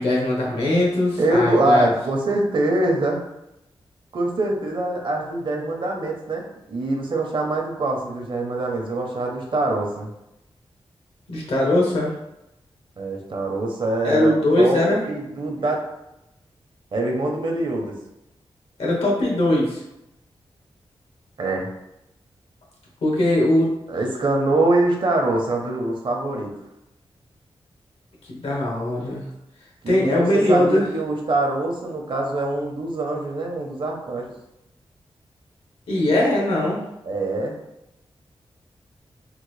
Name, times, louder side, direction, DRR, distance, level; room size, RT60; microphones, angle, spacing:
voice 1, 0.0-1.9 11.3-12.1 14.0-15.0 18.8-19.8 23.0-23.7 28.3-29.2 29.9-30.8 35.9-36.8, left 1 dB, 80° left, -3 dB, 1.1 m, -20 dB
voice 2, 1.2-3.2 4.1-10.1 13.0-14.8 15.1-15.9 16.9-17.9 21.4-21.7 23.9-26.5 29.8-34.3 37.0-37.5, right 2 dB, 55° right, 0 dB, 0.7 m, -24 dB
3.7 x 2.0 x 3.2 m, 0.86 s
wide cardioid pair, 85°, 10 cm